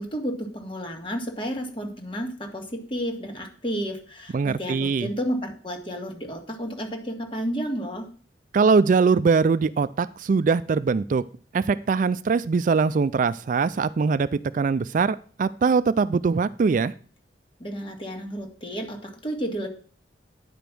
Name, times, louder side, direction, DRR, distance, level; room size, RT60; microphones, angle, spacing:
voice 1, 0.0-8.1 17.6-19.7, equal, 30° left, 3 dB, 1.9 m, -31 dB
voice 2, 4.3-5.1 8.5-11.2 11.5-16.9, right 5 dB, 45° right, 15 dB, 0.3 m, -22 dB
10.0 x 5.2 x 6.1 m, 0.42 s
head